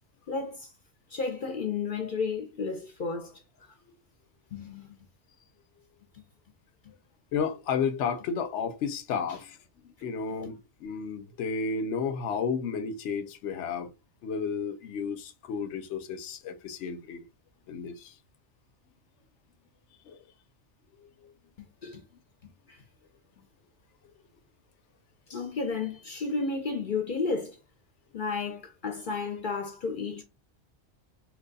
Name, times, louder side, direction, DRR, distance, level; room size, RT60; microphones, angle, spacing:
voice 1, 0.3-0.7 1.1-3.3 4.5-4.9 21.6-22.0 22.7-22.8 25.3-27.6 28.1-30.2, left 4 dB, 55° left, 0.7 m, -32 dB
voice 2, 7.3-9.6 10.0-13.9 14.2-17.2 17.7-18.1 20.1-20.2, left 6 dB, 80° left, 0.9 m, -32 dB
3.0 x 2.2 x 3.9 m
omnidirectional pair, 1.2 m